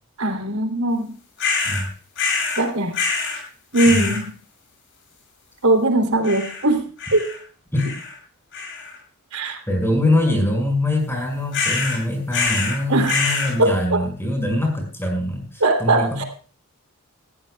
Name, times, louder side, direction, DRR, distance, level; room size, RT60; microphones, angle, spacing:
voice 1, 0.2-1.1 2.6-2.9 3.7-4.2 5.6-6.8 7.1-7.3 9.3-9.6 12.9-13.2 13.6-13.7 15.6-16.2, right 2 dB, 85° right, 4 dB, 3.2 m, -19 dB
sound 1, 1.4-1.8 2.2-2.6 2.9-3.4 3.7-4.2 6.2-6.6 7.0-7.4 7.8-8.2 8.5-9.0 11.5-12.0 12.3-12.8 13.0-13.5, left 4 dB, 55° left, 7.2 m, -24 dB
voice 2, 3.9-4.2 7.7-7.9 9.7-16.3, left 1 dB, 10° left, 3 dB, 5.7 m, -23 dB
19.5 x 15.0 x 2.3 m, 0.40 s
head